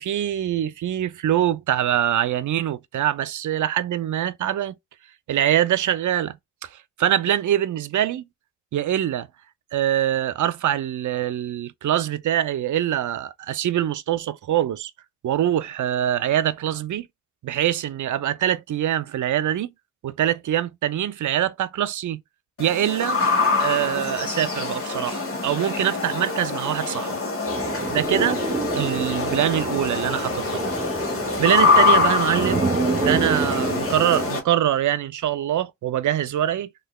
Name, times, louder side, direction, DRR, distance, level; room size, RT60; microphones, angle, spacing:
voice 1, 0.0-4.7 5.3-6.4 6.6-6.7 7.0-8.2 8.7-9.3 9.7-14.9 15.2-17.1 17.4-19.7 20.0-22.2 22.6-23.2 23.6-27.2 27.9-28.4 28.7-30.6 31.1-32.6 33.0-36.7, right 11 dB, 90° right, 0.4 m, -24 dB
sound 1, 22.6-34.4, left 4 dB, 50° left, 1.3 m, -24 dB
sound 2, 27.5-34.3, right 4 dB, 25° right, 0.5 m, -28 dB
3.7 x 3.2 x 2.2 m
wide cardioid pair, 155°, 29 cm